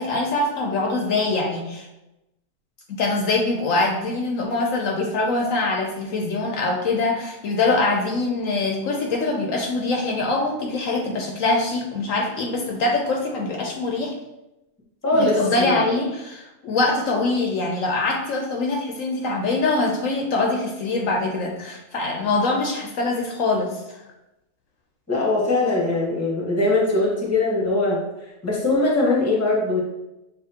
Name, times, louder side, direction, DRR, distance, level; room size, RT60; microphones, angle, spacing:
voice 1, 0.0-1.9 2.9-14.2 15.2-24.0, left 3 dB, 70° left, 0 dB, 1.0 m, -23 dB
voice 2, 15.0-15.8 25.1-28.0 28.4-29.8, left 2 dB, 10° left, -3 dB, 0.9 m, -21 dB
6.7 x 2.6 x 2.8 m, 0.94 s
omnidirectional pair, 1.5 m